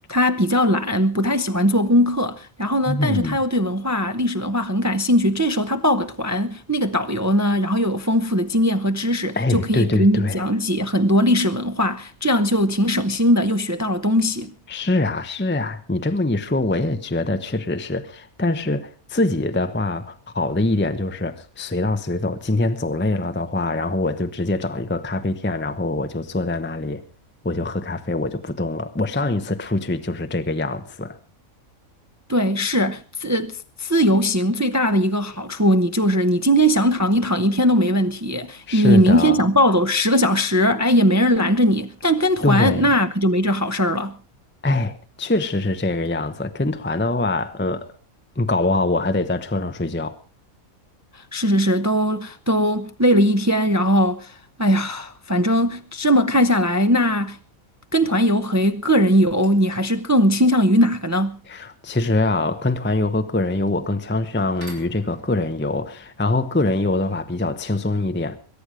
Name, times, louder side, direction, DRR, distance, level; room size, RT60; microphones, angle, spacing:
voice 1, 0.1-14.5 32.3-44.2 51.1-57.4 57.9-61.4, equal, 20° right, 0.5 m, -19 dB
voice 2, 2.9-3.4 9.4-10.4 14.7-27.0 27.4-31.2 38.7-39.4 42.4-42.9 44.6-47.9 48.4-50.2 61.5-68.4, left 2 dB, 10° left, 0.8 m, -23 dB
sound 1, 59.3-67.7, right 1 dB, 55° right, 4.9 m, -51 dB
22.5 x 10.0 x 5.1 m
omnidirectional pair, 1.4 m